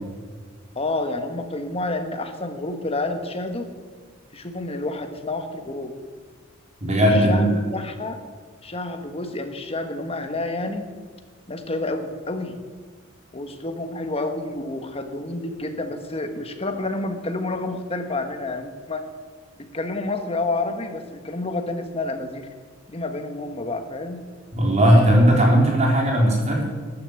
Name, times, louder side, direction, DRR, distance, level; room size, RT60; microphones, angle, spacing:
voice 1, 0.7-3.7 4.3-5.9 7.0-8.2 8.6-10.8 11.5-12.6 13.3-19.1 19.6-22.5 22.9-24.2, left 2 dB, 30° left, 6 dB, 1.4 m, -29 dB
voice 2, 6.8-7.5 24.5-26.6, equal, 35° right, -1 dB, 3.8 m, -17 dB
13.5 x 10.5 x 7.9 m, 1.6 s
head